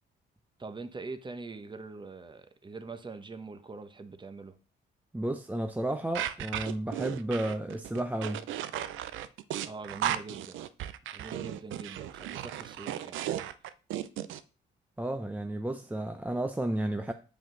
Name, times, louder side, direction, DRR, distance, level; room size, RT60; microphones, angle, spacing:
voice 1, 0.6-4.6 9.7-10.6 11.1-13.2, right 3 dB, 25° right, 0.9 m, -43 dB
voice 2, 5.1-8.4 15.0-17.1, right 1 dB, 10° right, 0.5 m, -32 dB
sound 1, 6.1-14.4, right 11 dB, 80° right, 0.5 m, -35 dB
7.7 x 5.1 x 3.8 m
cardioid pair, 90°, 20 cm